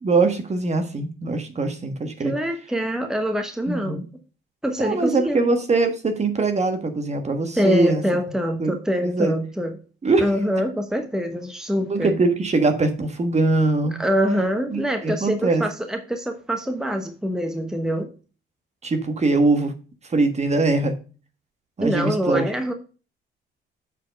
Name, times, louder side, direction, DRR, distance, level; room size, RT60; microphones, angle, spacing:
voice 1, 0.0-2.3 3.7-4.0 4.8-8.0 8.6-9.3 10.0-10.3 11.8-14.0 14.7-15.6 18.8-19.7 20.1-20.9 21.8-22.5, right 3 dB, 35° right, 7 dB, 1.5 m, -22 dB
voice 2, 2.2-4.0 4.6-5.5 7.5-9.8 10.2-12.2 14.0-18.1 21.8-22.7, equal, 5° right, 5 dB, 1.1 m, -24 dB
7.4 x 4.4 x 5.2 m, 0.36 s
cardioid pair, 90°, 20 cm